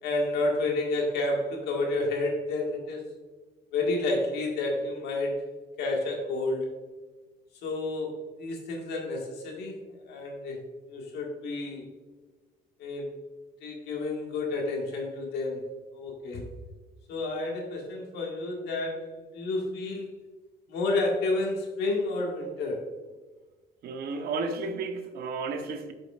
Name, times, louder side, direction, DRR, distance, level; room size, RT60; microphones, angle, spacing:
voice 1, 0.0-3.0 3.7-5.3 5.8-6.7 7.6-9.8 10.1-10.6 10.9-11.8 12.8-13.0 13.6-15.6 15.9-16.5 17.1-20.1 20.7-22.8, left 2 dB, 80° left, 0 dB, 1.7 m, -30 dB
voice 2, 23.8-25.9, right 4 dB, 65° right, 6 dB, 0.8 m, -32 dB
8.4 x 5.1 x 2.4 m, 1.3 s
cardioid pair, 110°, 17 cm